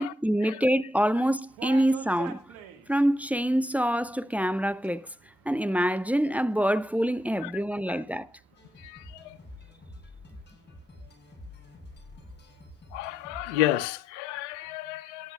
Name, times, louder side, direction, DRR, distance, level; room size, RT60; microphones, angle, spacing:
voice 1, 0.0-2.5 2.9-5.1 5.5-8.3, equal, 5° right, 0.5 m, -26 dB
sound 1, 1.4-12.8, right 10 dB, 80° right, 1.6 m, -50 dB
sound 2, 8.6-13.6, left 2 dB, 30° left, 7.6 m, -48 dB
voice 2, 8.8-9.4 12.9-15.3, left 14 dB, 85° left, 0.6 m, -31 dB
23.0 x 10.5 x 2.2 m
hypercardioid pair, 40°, 35 cm